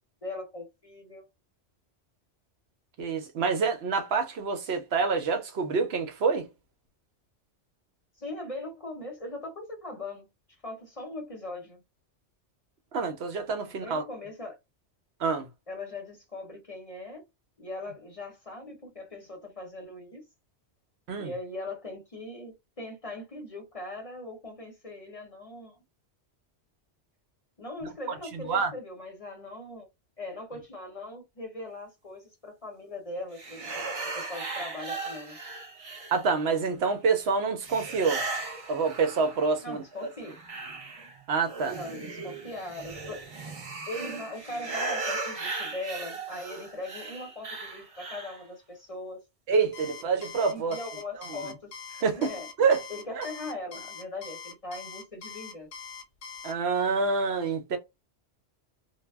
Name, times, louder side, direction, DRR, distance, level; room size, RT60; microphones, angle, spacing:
voice 1, 0.2-1.3 8.2-10.3 10.6-11.8 13.7-14.6 15.7-17.2 17.6-20.2 21.2-25.8 27.6-29.9 30.2-33.9 34.1-35.4 39.6-40.4 41.7-43.2 43.9-49.2 50.5-52.5 52.9-55.7, left 2 dB, 35° left, 0.7 m, -40 dB
voice 2, 3.0-6.5 12.9-14.0 15.2-15.5 21.1-21.3 28.3-28.7 36.1-38.2 38.7-39.8 41.3-41.8 49.5-50.8 51.3-51.4 52.0-52.3 52.6-52.8 53.1-53.3 56.4-57.8, right 5 dB, 70° right, 0.8 m, -27 dB
sound 1, 33.3-36.5 37.6-39.6 40.0-48.4, right 3 dB, 40° right, 0.5 m, -37 dB
Alarm, 49.7-56.5, left 6 dB, 75° left, 0.8 m, -43 dB
2.2 x 2.0 x 3.3 m
omnidirectional pair, 1.2 m